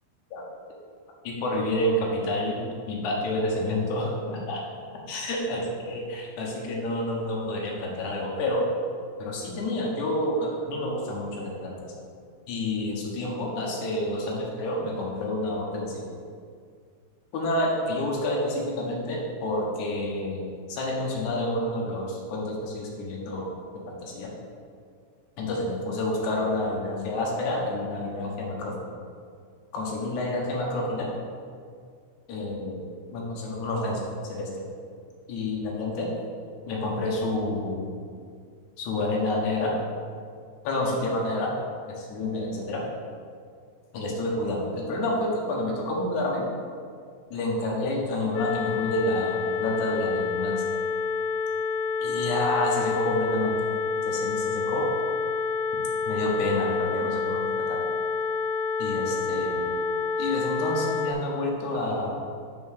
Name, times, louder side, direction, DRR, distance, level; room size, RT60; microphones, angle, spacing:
voice 1, 1.2-4.6 5.1-8.6 9.2-11.8 12.5-16.0 17.3-23.5 23.9-24.3 25.4-28.9 29.7-31.1 32.3-32.8 33.1-34.5 35.3-36.1 36.7-37.9 38.8-39.7 40.6-41.5 42.0-42.8 43.9-46.4 47.3-50.6 52.0-53.6 54.1-54.9 56.1-57.8 58.8-59.7 60.2-62.2, left 1 dB, 70° left, -2 dB, 1.9 m, -29 dB
sound 1, 48.4-61.1, left 5 dB, 90° left, 2.9 m, -28 dB
5.9 x 5.6 x 6.4 m, 2.2 s
omnidirectional pair, 5.0 m